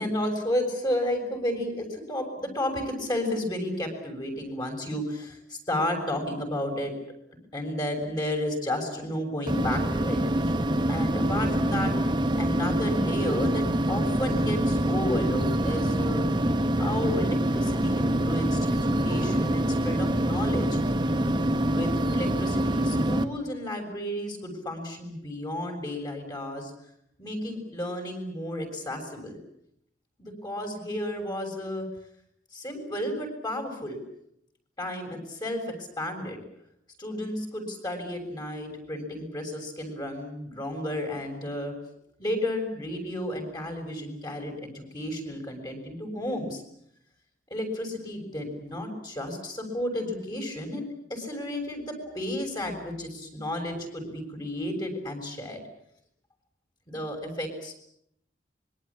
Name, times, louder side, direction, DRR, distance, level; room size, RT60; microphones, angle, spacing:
voice 1, 0.0-6.9 7.5-10.2 10.4-10.5 10.9-11.9 12.4-16.3 16.7-20.8 21.6-26.7 27.2-29.4 30.2-31.9 32.5-34.0 34.8-36.4 37.0-41.7 42.2-46.6 47.5-50.8 51.1-55.6 56.9-57.7, left 1 dB, 25° left, 4 dB, 6.7 m, -32 dB
sound 1, 9.5-23.2, right 1 dB, 25° right, 1.4 m, -25 dB
26.0 x 23.0 x 8.6 m, 0.73 s
head